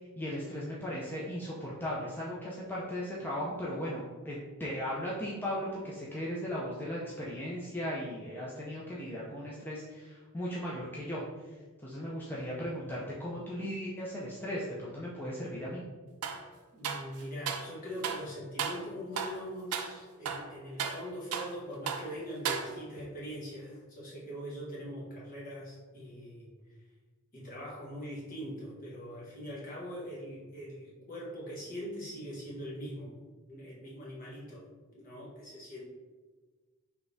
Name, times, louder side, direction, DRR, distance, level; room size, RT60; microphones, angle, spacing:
voice 1, 0.2-11.6 11.8-15.8, equal, 10° left, -6 dB, 0.5 m, -37 dB
sound 1, 16.2-16.4 16.8-17.7 18.0-18.3 18.6-18.9 19.2-19.4 19.7-19.9 20.2-21.6 21.9-22.1 22.4-23.0, right 6 dB, 90° right, 0.4 m, -35 dB
voice 2, 16.7-26.5 27.3-33.1 33.4-34.6 34.9-35.9, equal, 40° left, -5 dB, 1.2 m, -42 dB
5.1 x 3.4 x 2.6 m, 1.4 s
head